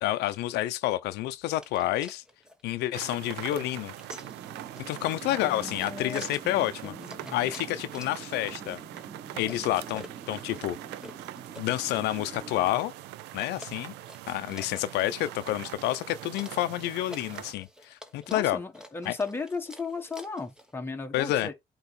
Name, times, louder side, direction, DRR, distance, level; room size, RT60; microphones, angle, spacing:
voice 1, 0.0-2.2 2.6-3.9 4.8-6.9 7.3-8.8 9.4-10.8 11.6-12.9 13.3-13.9 14.3-18.6 19.1-19.2 21.1-21.5, left 15 dB, 85° left, 0.6 m, -29 dB
sound 1, 1.6-20.8, equal, 5° right, 1.2 m, -50 dB
sound 2, 2.9-17.5, right 14 dB, 85° right, 0.5 m, -43 dB
sound 3, 4.2-12.8, right 5 dB, 25° right, 1.3 m, -47 dB
voice 2, 5.3-7.4 18.3-21.5, left 4 dB, 15° left, 1.4 m, -36 dB
8.1 x 3.1 x 4.2 m
cardioid pair, 110°, 17 cm